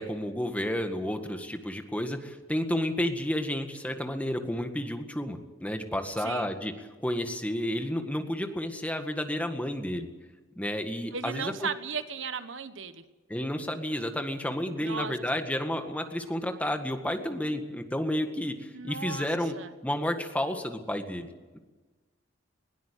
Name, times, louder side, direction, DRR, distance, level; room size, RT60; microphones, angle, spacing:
voice 1, 0.0-6.7 7.0-10.1 10.6-11.7 13.3-19.6 19.8-21.3, left 1 dB, 5° left, 6 dB, 1.8 m, -31 dB
voice 2, 6.2-6.5 11.1-13.0 14.8-15.1 18.7-19.3 19.5-19.7, right 5 dB, 65° right, 11 dB, 1.3 m, -35 dB
21.0 x 18.0 x 8.5 m, 1.3 s
head